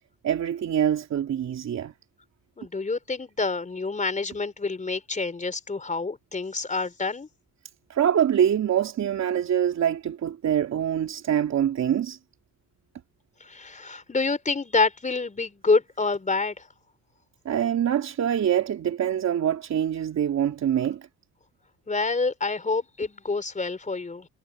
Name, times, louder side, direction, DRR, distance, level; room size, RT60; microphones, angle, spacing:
voice 1, 0.2-1.9 7.9-12.2 17.4-21.1, right 9 dB, 60° right, 3.3 m, -24 dB
voice 2, 2.6-7.3 13.5-16.5 21.9-24.3, left 3 dB, 25° left, 4.2 m, -27 dB
cardioid pair, 90°, 30 cm